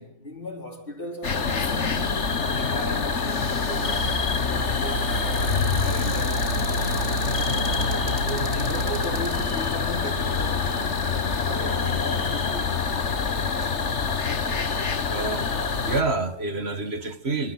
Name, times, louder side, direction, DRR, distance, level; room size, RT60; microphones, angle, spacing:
voice 1, 0.0-2.3 2.5-4.1 4.5-7.5 8.2-10.9 11.4-12.8, equal, 45° left, 4.6 m, -37 dB
sound 1, 1.2-16.0, left 4 dB, 65° left, 1.9 m, -25 dB
Cupboard open or close, 3.2-13.6 14.2-14.3 14.6-14.9, right 2 dB, 75° right, 4.5 m, -42 dB
voice 2, 15.1-15.5 15.9-17.5, right 3 dB, 55° right, 1.9 m, -27 dB
26.0 x 25.5 x 6.0 m
omnidirectional pair, 1.3 m